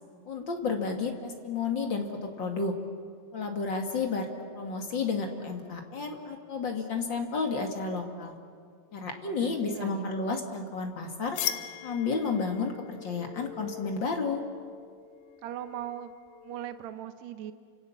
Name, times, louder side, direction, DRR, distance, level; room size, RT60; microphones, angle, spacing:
voice 1, 0.3-2.7 3.3-4.3 4.5-8.3 8.9-11.4 11.8-14.4, left 4 dB, 35° left, 3 dB, 2.2 m, -31 dB
voice 2, 9.3-10.1 15.4-16.1 16.4-17.5, right 11 dB, 80° right, 9 dB, 1.6 m, -39 dB
sound 1, 11.3-16.9, left 12 dB, 75° left, 3.0 m, -40 dB
29.5 x 27.5 x 7.3 m, 2.1 s
omnidirectional pair, 4.6 m